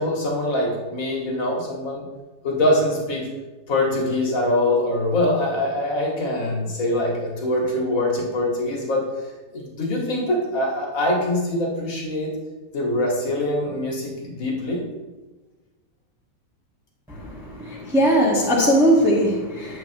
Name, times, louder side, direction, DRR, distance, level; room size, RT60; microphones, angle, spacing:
voice 1, 0.0-2.0 2.4-3.3 3.7-9.0 9.5-12.3 12.7-14.8, left 1 dB, 50° left, -2 dB, 2.4 m, -23 dB
voice 2, 17.1-19.8, equal, ahead, -5 dB, 1.5 m, -20 dB
11.5 x 7.9 x 3.0 m, 1.2 s
omnidirectional pair, 1.9 m